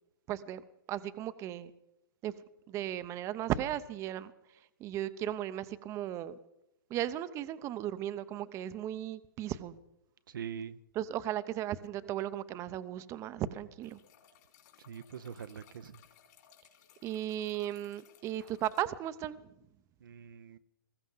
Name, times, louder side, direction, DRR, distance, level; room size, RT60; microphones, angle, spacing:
voice 1, 0.3-0.6 0.9-1.7 2.2-2.3 2.7-4.3 4.8-6.3 6.9-9.7 11.0-14.0 17.0-19.4, right 12 dB, 25° right, 0.7 m, -36 dB
voice 2, 10.3-10.8 14.9-16.0 18.4-18.5 20.0-20.6, right 8 dB, 65° right, 0.7 m, -43 dB
sound 1, 13.8-18.8, left 9 dB, 50° left, 3.0 m, -62 dB
20.5 x 14.5 x 3.9 m
hypercardioid pair, 120°, 12 cm